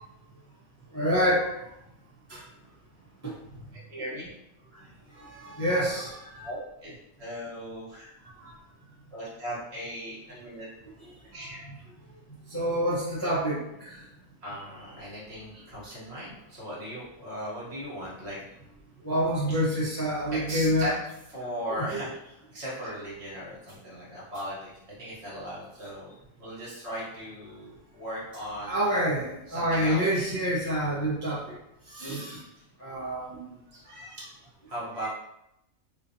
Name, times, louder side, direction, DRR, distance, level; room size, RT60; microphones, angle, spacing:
voice 1, 0.9-1.5 2.3-2.4 3.2-3.3 5.2-6.5 8.4-8.5 12.5-14.0 19.0-20.9 21.8-21.9 28.7-31.5 31.9-32.4 32.8-33.4, equal, 15° left, -8 dB, 0.8 m, -27 dB
voice 2, 3.9-4.3 6.4-6.9 7.2-8.1 9.1-10.7 11.3-11.6 13.1-13.2 14.4-18.4 19.5-19.6 20.0-21.0 21.2-29.0 29.5-30.1 31.8-33.0 33.7-34.3 34.7-35.1, equal, 55° right, -6 dB, 1.4 m, -38 dB
4.1 x 2.4 x 2.7 m, 0.83 s
omnidirectional pair, 1.4 m